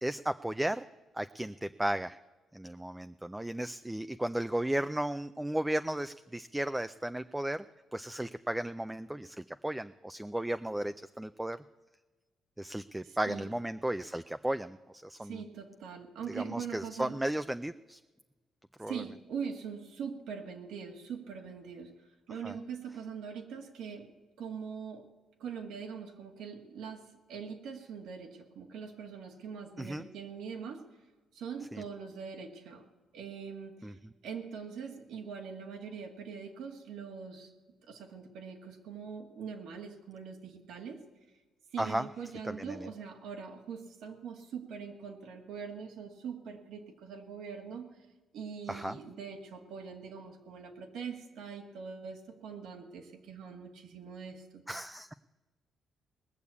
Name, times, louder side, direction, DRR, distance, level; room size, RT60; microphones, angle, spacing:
voice 1, 0.0-0.8 1.1-2.2 2.5-7.6 7.9-11.6 12.6-14.8 15.0-15.4 16.3-18.0 18.8-19.0 22.4-22.5 29.8-30.1 31.7-31.8 33.8-33.9 41.8-42.0 42.4-42.9 48.7-49.0 54.7-55.1, right 1 dB, 10° right, 11 dB, 0.4 m, -34 dB
voice 2, 13.0-13.5 15.2-17.2 18.9-21.9 22.3-24.1 24.4-25.0 25.4-30.8 31.3-32.8 33.1-34.0 34.2-37.5 37.9-41.0 41.7-47.9 48.3-54.6, right 6 dB, 80° right, 4 dB, 1.9 m, -42 dB
19.5 x 6.9 x 8.3 m, 1.2 s
cardioid pair, 90°, 0 cm